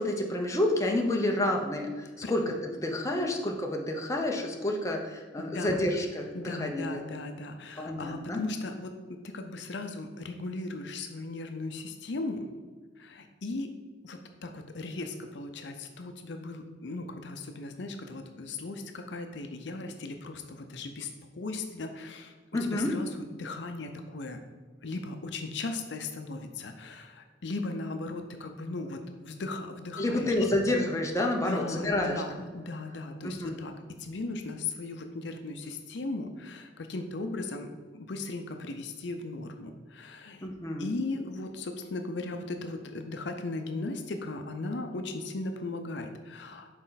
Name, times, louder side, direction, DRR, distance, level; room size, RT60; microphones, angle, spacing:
voice 1, 0.0-7.1 7.8-8.4 22.5-22.9 30.0-32.2 33.2-33.6 40.4-40.9, left 1 dB, 15° left, 1 dB, 0.7 m, -29 dB
voice 2, 5.4-5.9 6.3-12.4 13.0-13.7 14.0-22.3 22.7-24.4 24.8-30.3 31.4-40.5 40.8-46.7, left 2 dB, 70° left, 6 dB, 0.6 m, -37 dB
6.3 x 4.4 x 4.0 m, 1.4 s
head